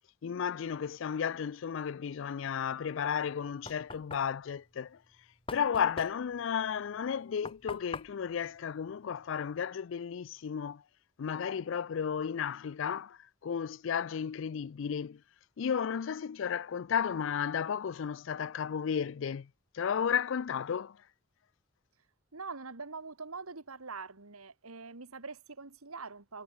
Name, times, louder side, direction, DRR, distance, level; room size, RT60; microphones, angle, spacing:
voice 1, 0.2-5.0 5.5-10.8 11.2-15.2 15.6-19.5 19.7-21.0, left 7 dB, 65° left, 0.4 m, -33 dB
Knock, 3.1-9.6, left 3 dB, 25° left, 4.3 m, -47 dB
voice 2, 22.3-26.4, right 4 dB, 90° right, 2.0 m, -44 dB
head